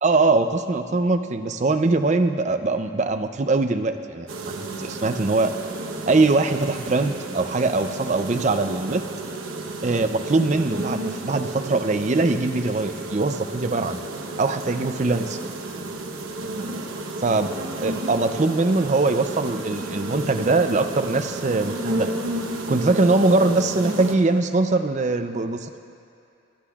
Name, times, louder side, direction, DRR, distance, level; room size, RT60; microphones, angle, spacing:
voice 1, 0.0-4.3 4.8-5.5 6.1-9.0 9.8-14.0 14.4-15.4 17.2-17.5 17.8-22.1 22.7-25.8, right 3 dB, 35° right, 8 dB, 0.5 m, -22 dB
sound 1, 4.3-24.2, right 2 dB, 80° right, 1.0 m, -32 dB
24.0 x 12.0 x 2.4 m, 2.5 s
head